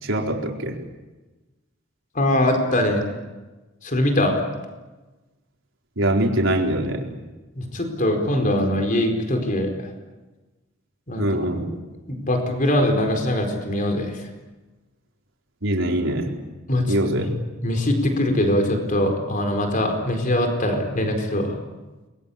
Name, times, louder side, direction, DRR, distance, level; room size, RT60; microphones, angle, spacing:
voice 1, 0.0-0.8 6.0-7.1 11.2-11.7 15.6-16.3 16.9-17.3, right 1 dB, 70° right, 1 dB, 4.4 m, -23 dB
voice 2, 2.1-3.0 3.8-4.4 7.6-9.9 11.1-11.4 12.1-14.3 16.7-17.3 17.6-21.6, left 1 dB, 40° left, 4 dB, 4.6 m, -22 dB
30.0 x 22.0 x 8.6 m, 1.2 s
head